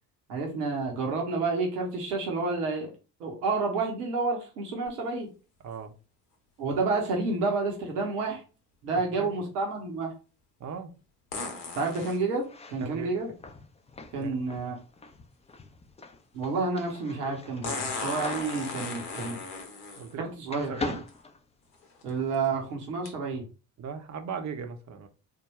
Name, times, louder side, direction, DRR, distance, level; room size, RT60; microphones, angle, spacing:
voice 1, 0.3-2.9 3.2-5.3 6.6-8.4 8.8-10.1 11.8-13.3 14.1-14.8 16.3-19.4 20.2-20.9 22.0-23.5, right 3 dB, 80° right, 1 dB, 0.9 m, -30 dB
sound 1, 4.9-5.0 11.3-12.2 14.2-14.3 17.6-20.1 21.1-21.2 21.8-22.1 23.1-23.2, left 3 dB, 85° left, 0.8 m, -36 dB
voice 2, 5.6-6.0 9.1-9.3 10.6-10.9 12.8-13.1 14.2-14.3 20.0-21.0 23.8-25.1, right 6 dB, 35° right, 7 dB, 0.7 m, -38 dB
sound 2, 12.4-20.2 20.5-22.1, left 3 dB, 15° left, 0.4 m, -42 dB
3.6 x 2.2 x 3.0 m, 0.33 s
hypercardioid pair, 50°, 47 cm